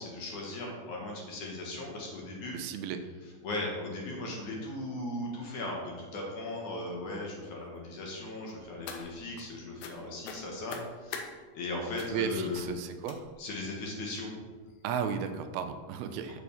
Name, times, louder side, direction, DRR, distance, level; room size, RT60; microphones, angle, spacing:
voice 1, 0.0-2.6 3.4-11.2 11.5-12.7 13.4-14.3 16.3-16.4, left 2 dB, 60° left, -1 dB, 2.6 m, -37 dB
voice 2, 2.5-3.0 12.1-13.3 14.8-16.4, right 7 dB, 85° right, 8 dB, 2.5 m, -34 dB
sound 1, 8.5-9.4 9.8-10.0 10.2-11.3 12.0-12.2 12.5-12.7 13.1-13.5 14.1-14.2 14.7-14.8 15.1-15.2, left 6 dB, 80° left, 2.7 m, -43 dB
6.9 x 6.0 x 6.8 m, 1.4 s
omnidirectional pair, 4.4 m